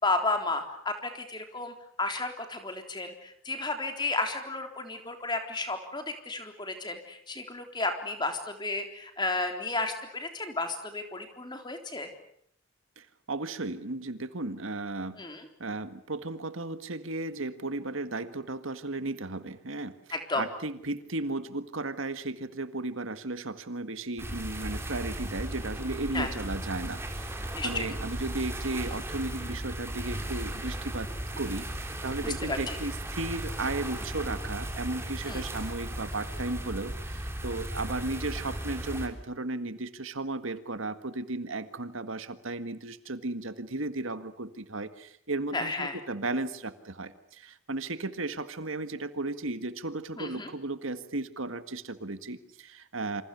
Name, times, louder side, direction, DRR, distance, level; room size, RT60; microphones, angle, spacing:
voice 1, 0.0-12.1 15.2-15.5 20.1-20.4 26.1-26.3 27.5-27.8 32.2-32.8 35.2-35.4 45.5-46.0 50.2-50.5, left 3 dB, 20° left, 5 dB, 3.7 m, -33 dB
voice 2, 13.0-15.2 15.6-20.0 20.4-31.1 31.4-53.2, right 2 dB, 75° right, 11 dB, 1.8 m, -35 dB
sound 1, 24.2-39.1, right 1 dB, 10° right, 3.7 m, -36 dB
28.0 x 27.0 x 7.0 m, 0.68 s
head